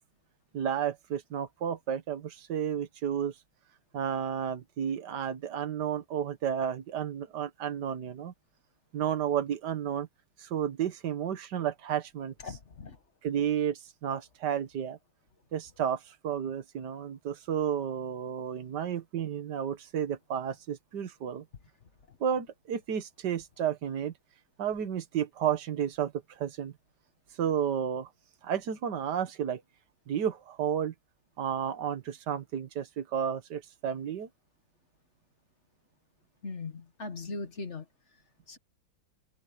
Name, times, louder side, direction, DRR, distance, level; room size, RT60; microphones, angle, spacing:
voice 1, 0.5-3.4 3.9-8.3 8.9-10.1 10.4-12.3 13.2-15.0 15.5-21.5 22.2-24.1 24.6-26.7 27.4-28.1 28.4-29.6 30.1-30.9 31.4-34.3, right 8 dB, 65° right, 1.9 m, -32 dB
voice 2, 12.4-13.0 36.4-37.8 38.5-38.6, left 3 dB, 40° left, 1.6 m, -39 dB
omnidirectional pair, 2.1 m